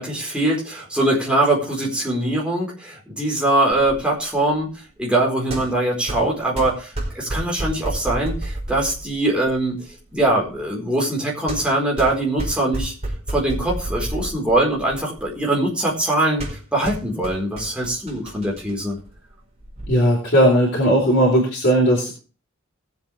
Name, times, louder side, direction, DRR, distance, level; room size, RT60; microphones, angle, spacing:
voice 1, 0.0-4.7 5.0-9.8 10.1-12.9 13.3-19.0, right 1 dB, 5° right, -3 dB, 4.4 m, -22 dB
sound 1, 3.7-19.9, right 1 dB, 30° right, 4.7 m, -32 dB
voice 2, 19.9-22.2, equal, 55° left, -3 dB, 4.1 m, -17 dB
20.0 x 7.9 x 3.4 m, 0.35 s
head